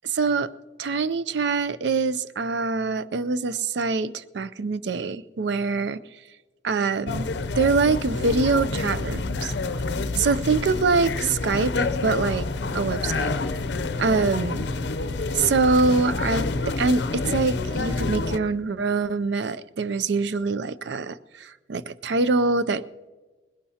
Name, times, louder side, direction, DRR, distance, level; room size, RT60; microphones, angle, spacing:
voice 1, 0.0-0.5 0.8-6.0 6.6-7.3 7.6-9.5 10.2-12.4 12.7-13.3 14.0-14.6 15.3-22.8, right 4 dB, 75° right, 15 dB, 0.5 m, -24 dB
sound 1, 7.1-18.4, left 3 dB, 70° left, 0.6 m, -28 dB
20.0 x 17.5 x 2.8 m, 1.3 s
head